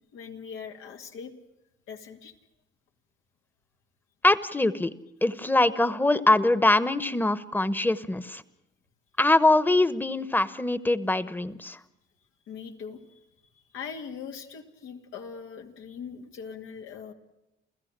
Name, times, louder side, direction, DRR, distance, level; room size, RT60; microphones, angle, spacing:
voice 1, 0.1-1.3 1.9-2.3 12.5-13.2 13.5-17.1, left 6 dB, 85° left, 3 dB, 2.5 m, -41 dB
voice 2, 4.2-4.9 5.2-8.4 9.2-11.8, left 2 dB, 10° left, 15 dB, 1.1 m, -23 dB
28.5 x 15.5 x 7.5 m, 0.92 s
cardioid pair, 90°, 20 cm